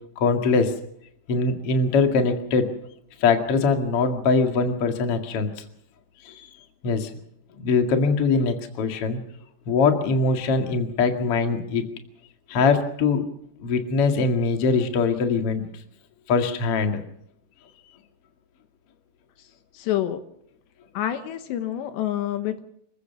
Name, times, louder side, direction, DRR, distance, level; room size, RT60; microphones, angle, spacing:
voice 1, 0.2-0.7 1.3-2.7 3.2-5.5 6.2-6.5 6.8-7.1 7.6-9.2 9.7-11.8 12.5-13.2 13.6-15.6 16.3-17.0, left 4 dB, 45° left, 5 dB, 2.2 m, -22 dB
voice 2, 19.8-20.2 20.9-22.6, left 12 dB, 80° left, 9 dB, 3.4 m, -27 dB
26.5 x 15.0 x 7.0 m, 0.70 s
omnidirectional pair, 5.0 m